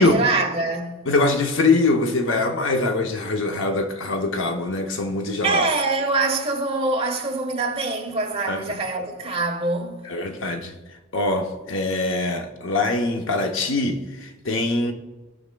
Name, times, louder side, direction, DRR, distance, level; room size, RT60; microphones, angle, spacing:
voice 1, 0.0-1.1 5.4-10.1, right 3 dB, 30° right, 1.2 m, -24 dB
voice 2, 1.1-5.6 8.5-8.8 10.1-10.8 11.1-14.9, left 2 dB, 65° left, 0.8 m, -23 dB
18.0 x 6.2 x 2.3 m
head